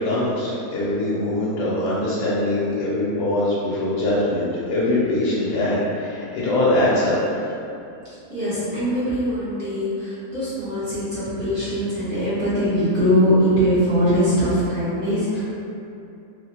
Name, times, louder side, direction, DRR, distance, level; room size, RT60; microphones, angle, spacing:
voice 1, 0.0-7.2, left 1 dB, 90° left, -8 dB, 1.2 m, -22 dB
voice 2, 8.3-15.4, equal, 35° right, -14 dB, 1.1 m, -21 dB
3.0 x 2.9 x 2.8 m, 2.7 s
omnidirectional pair, 1.7 m